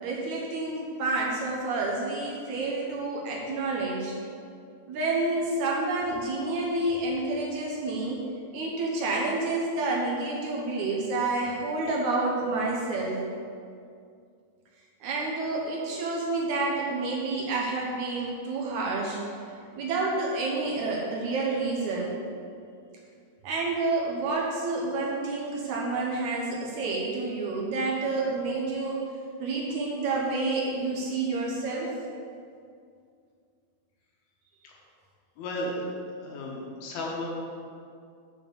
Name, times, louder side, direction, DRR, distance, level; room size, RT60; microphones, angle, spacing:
voice 1, 0.0-4.1 4.9-8.2 8.5-13.2 15.0-19.2 19.8-22.1 23.4-29.0 29.4-31.9, right 3 dB, 70° right, -3 dB, 2.0 m, -29 dB
voice 2, 35.4-35.8 36.2-37.3, left 1 dB, 85° left, -2 dB, 3.1 m, -34 dB
7.3 x 4.4 x 6.9 m, 2.3 s
omnidirectional pair, 4.2 m